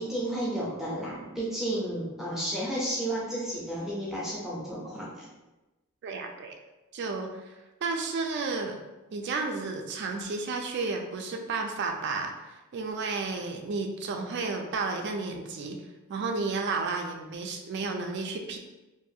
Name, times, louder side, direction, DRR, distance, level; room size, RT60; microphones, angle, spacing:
voice 1, 0.0-5.3, right 1 dB, ahead, -7 dB, 0.5 m, -32 dB
voice 2, 6.0-6.5 6.9-8.8 9.1-15.8 16.1-18.6, right 4 dB, 50° right, 3 dB, 0.3 m, -32 dB
2.5 x 2.3 x 2.7 m, 1.1 s
head